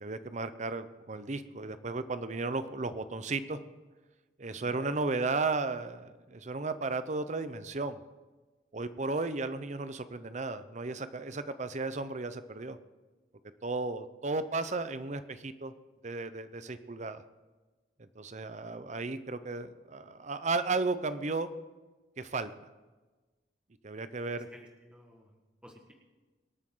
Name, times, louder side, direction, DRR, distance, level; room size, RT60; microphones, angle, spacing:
voice 1, 0.0-3.6 4.4-8.0 8.7-12.8 13.6-15.7 16.0-17.2 18.2-21.5 22.2-22.5 23.8-24.5, right 3 dB, 40° right, 12 dB, 0.7 m, -34 dB
voice 2, 4.5-4.8 24.3-25.9, equal, 5° right, 0 dB, 1.6 m, -54 dB
24.5 x 8.9 x 3.8 m, 1.2 s
head